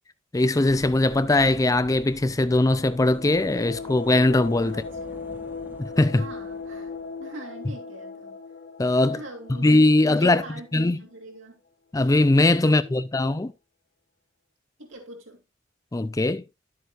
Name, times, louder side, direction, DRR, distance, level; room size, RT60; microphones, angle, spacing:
voice 1, 0.3-4.8 5.8-6.3 8.8-9.2 9.6-10.4 10.7-11.0 11.9-13.5 15.9-16.4, left 2 dB, 15° left, 0.4 m, -20 dB
sound 1, 0.7-7.3, right 1 dB, 10° right, 0.8 m, -47 dB
sound 2, 2.6-11.2, left 4 dB, 55° left, 0.9 m, -38 dB
voice 2, 4.6-5.2 6.1-6.9 7.2-8.4 9.1-9.7 10.0-11.6 12.6-13.5 14.8-15.4, right 1 dB, 80° right, 3.1 m, -42 dB
11.0 x 7.9 x 2.4 m
head